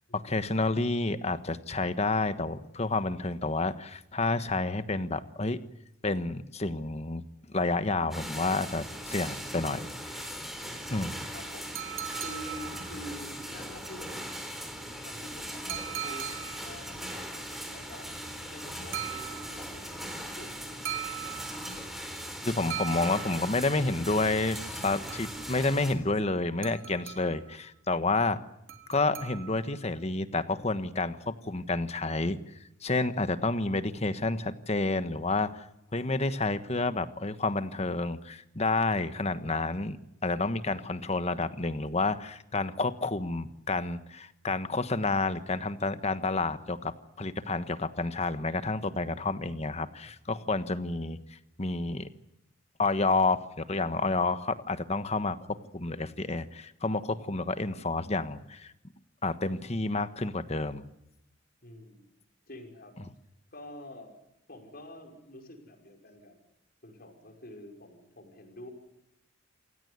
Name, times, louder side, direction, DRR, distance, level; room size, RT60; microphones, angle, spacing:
voice 1, 0.1-5.6 6.0-7.2 7.5-9.8 10.1-10.3 10.9-11.1 22.4-28.4 28.9-32.4 32.8-35.7 35.9-40.0 40.2-52.1 52.8-58.7 59.2-60.9, left 3 dB, 35° left, 11 dB, 1.3 m, -30 dB
sound 1, 8.1-25.9, equal, ahead, 3.8 m, -39 dB
voice 2, 10.6-11.0 11.3-14.5 15.0-18.1 18.5-20.8 61.6-62.1 62.5-63.0 63.5-64.1 64.5-66.4 66.8-68.7, left 1 dB, 50° left, 4 dB, 5.8 m, -47 dB
sound 2, 11.8-13.2 15.7-16.8 18.9-19.8 20.9-21.9 22.7-23.7 24.6-25.6 26.6-27.5 28.7-29.8, right 11 dB, 85° right, 3.3 m, -40 dB
28.0 x 16.5 x 9.7 m, 0.85 s
head